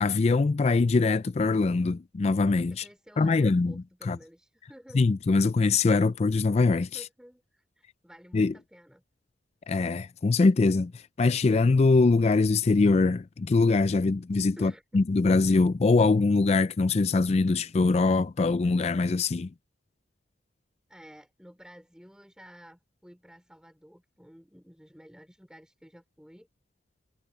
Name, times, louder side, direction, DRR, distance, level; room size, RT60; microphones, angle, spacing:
voice 1, 0.0-2.8 3.2-3.7 4.1-4.2 4.9-6.9 8.3-8.5 9.7-10.9 11.2-19.5, left 3 dB, 35° left, 0.4 m, -23 dB
voice 2, 2.7-5.0 6.9-9.0 14.6-15.0 20.9-26.5, equal, 5° right, 3.3 m, -52 dB
head